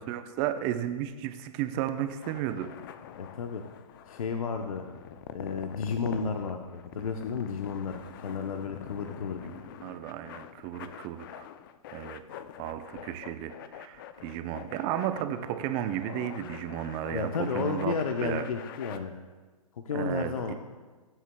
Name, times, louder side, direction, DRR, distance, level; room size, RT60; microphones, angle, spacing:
voice 1, 0.1-2.7 8.3-8.5 9.4-11.4 11.9-12.2 12.6-18.0 18.2-18.4 19.9-20.5, right 11 dB, 25° right, 9 dB, 0.7 m, -33 dB
sound 1, 2.0-19.0, left 10 dB, 35° left, 0.5 m, -45 dB
voice 2, 3.2-3.6 4.1-4.9 5.3-9.4 17.1-19.1 19.7-20.5, left 5 dB, 70° left, 5 dB, 0.8 m, -32 dB
21.0 x 8.1 x 2.3 m, 1.3 s
hypercardioid pair, 135°, 19 cm